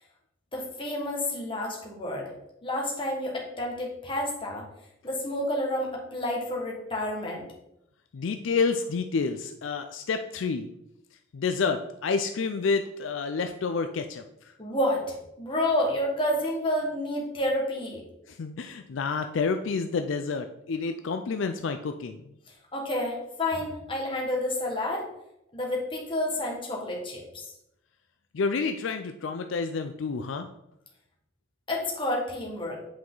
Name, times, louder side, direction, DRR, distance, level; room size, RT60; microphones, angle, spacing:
voice 1, 0.5-2.3 2.6-4.6 5.0-7.4 14.6-15.0 15.4-18.0 22.7-25.0 25.5-27.2 31.7-32.8, left 1 dB, 25° left, -2 dB, 1.6 m, -29 dB
voice 2, 8.1-10.7 11.3-14.5 18.3-22.2 28.3-30.5, left 4 dB, 70° left, 7 dB, 0.4 m, -29 dB
8.3 x 4.7 x 3.9 m, 0.84 s
head